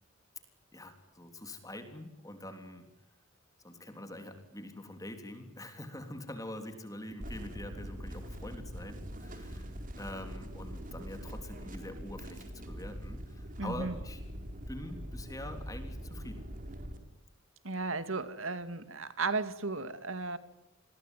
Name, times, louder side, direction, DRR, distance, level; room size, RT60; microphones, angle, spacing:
voice 1, 0.7-2.9 3.6-9.7 10.0-14.2 14.7-16.4, left 1 dB, 15° left, 7 dB, 3.4 m, -45 dB
sound 1, 7.2-17.0, equal, 40° right, 4.1 m, -43 dB
voice 2, 13.6-14.0 17.6-20.4, right 3 dB, 75° right, 12 dB, 2.3 m, -35 dB
29.5 x 21.5 x 9.3 m, 0.83 s
head